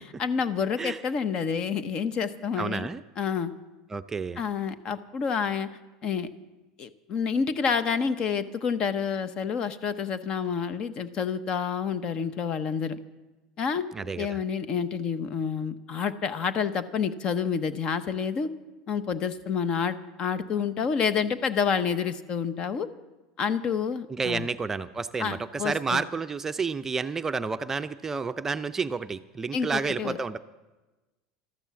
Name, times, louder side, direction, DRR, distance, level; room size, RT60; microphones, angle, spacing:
voice 1, 0.2-2.9 3.2-3.5 4.4-5.7 6.0-6.3 6.8-13.0 13.6-13.9 14.1-18.5 18.9-22.9 23.4-24.5 25.2-26.0 29.5-30.2, left 6 dB, 40° left, 13 dB, 0.9 m, -28 dB
voice 2, 2.6-3.0 3.9-4.4 13.9-14.4 24.1-30.4, right 4 dB, 20° right, 9 dB, 0.5 m, -30 dB
13.5 x 12.5 x 7.1 m, 1.1 s
supercardioid pair, 115°, 2 cm